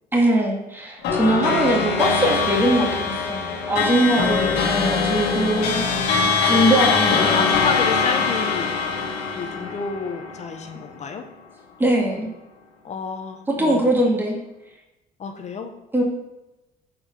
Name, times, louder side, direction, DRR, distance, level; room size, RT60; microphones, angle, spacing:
voice 1, 0.1-5.8 6.4-7.4 11.8-12.3 13.6-14.4 15.9-16.0, right 1 dB, 10° right, -2 dB, 2.0 m, -21 dB
sound 1, 1.0-10.7, left 5 dB, 85° left, 1.5 m, -22 dB
voice 2, 7.1-8.8 9.3-11.3 12.8-13.9 15.2-15.7, left 5 dB, 40° left, 6 dB, 0.8 m, -30 dB
6.8 x 4.4 x 6.7 m, 0.97 s
cardioid pair, 110°, 17 cm